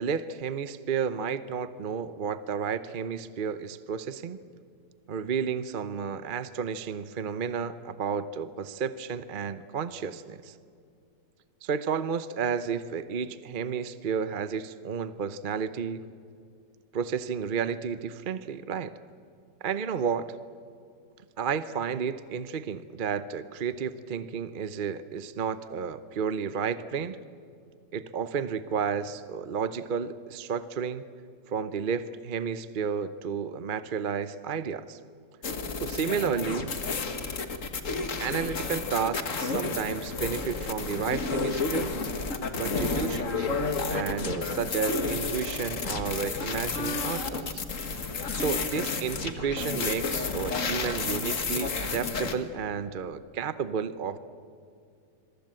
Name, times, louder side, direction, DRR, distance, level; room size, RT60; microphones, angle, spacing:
voice 1, 0.0-4.4 5.1-10.5 11.6-16.0 16.9-18.9 19.6-20.3 21.4-27.2 27.9-31.1 31.5-35.0 35.8-36.7 38.2-41.9 42.6-43.5 43.9-47.6 48.3-54.2, right 6 dB, 50° right, 13 dB, 0.6 m, -32 dB
sound 1, 35.4-52.4, left 4 dB, 45° left, 1.9 m, -31 dB
27.5 x 22.5 x 7.7 m, 2.4 s
omnidirectional pair, 1.9 m